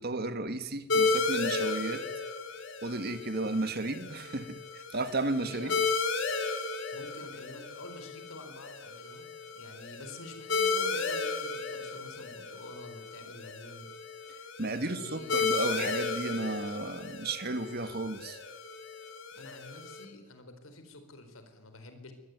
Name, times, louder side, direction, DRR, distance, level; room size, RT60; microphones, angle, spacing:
voice 1, 0.0-2.0 2.8-5.7 14.6-18.4, right 2 dB, 50° right, 1.7 m, -33 dB
sound 1, 0.9-20.0, left 4 dB, 60° left, 3.4 m, -34 dB
voice 2, 6.9-9.2 9.5-13.9 14.7-15.5 19.3-22.1, left 2 dB, 80° left, 4.4 m, -48 dB
23.5 x 19.0 x 9.6 m
head